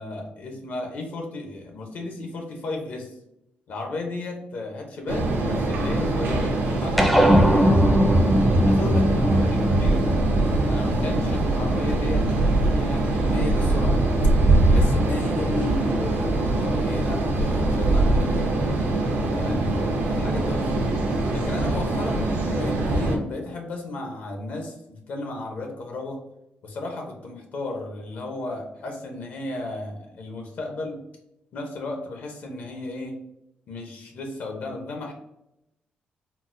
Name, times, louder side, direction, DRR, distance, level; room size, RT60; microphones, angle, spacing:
voice 1, 0.0-3.2 3.7-8.0 8.6-10.0 10.7-12.3 12.7-14.1 14.7-18.6 19.3-20.8 21.3-26.2 26.6-31.0 31.5-33.2 33.7-35.1, left 2 dB, 60° left, 2 dB, 0.6 m, -34 dB
sound 1, 5.1-23.2, right 2 dB, 90° right, 0.6 m, -23 dB
sound 2, 7.0-11.7, equal, ahead, 0.4 m, -20 dB
3.9 x 2.0 x 2.5 m, 0.84 s
wide cardioid pair, 165°, 3 cm